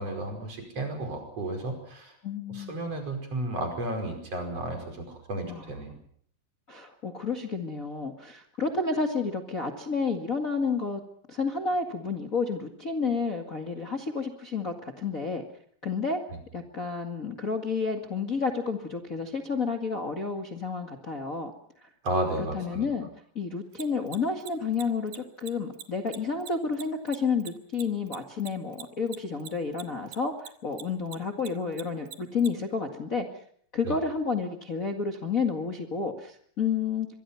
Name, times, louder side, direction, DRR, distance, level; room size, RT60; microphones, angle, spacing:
voice 1, 0.0-2.1 2.5-5.9 22.0-22.9 33.8-34.0, right 1 dB, 45° right, 4 dB, 6.2 m, -33 dB
voice 2, 2.2-2.8 5.5-6.0 6.7-11.0 11.3-15.4 15.8-16.2 16.5-21.5 21.8-21.9 22.4-23.1 23.4-33.3 33.7-37.1, left 4 dB, 30° left, 3 dB, 1.9 m, -30 dB
Mechanisms, 23.7-30.5 30.7-32.5, right 10 dB, 80° right, 3.2 m, -41 dB
25.0 x 23.5 x 5.7 m, 0.63 s
omnidirectional pair, 3.8 m